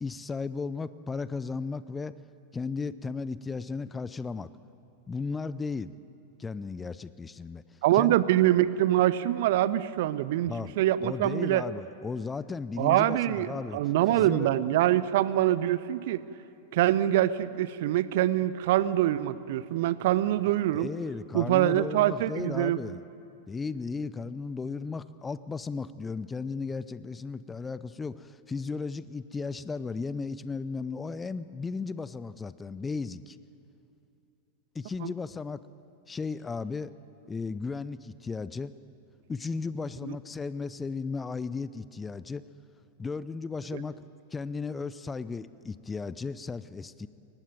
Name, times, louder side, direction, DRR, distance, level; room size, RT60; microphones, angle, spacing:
voice 1, 0.0-2.1 2.5-4.5 5.1-6.0 6.4-7.6 7.9-8.2 10.5-13.8 14.1-14.5 20.7-23.0 23.5-33.4 34.7-35.6 36.1-36.9 37.3-38.7 39.3-42.4 43.0-44.0 44.3-47.1, left 4 dB, 15° left, 16 dB, 0.6 m, -35 dB
voice 2, 7.8-11.6 12.8-16.2 16.7-20.9 21.3-22.8 35.0-35.1 40.0-40.2 43.7-43.8, right 13 dB, 50° right, 17 dB, 0.7 m, -25 dB
23.0 x 19.0 x 9.3 m, 2.7 s
figure-of-eight pair, 90°, 0 cm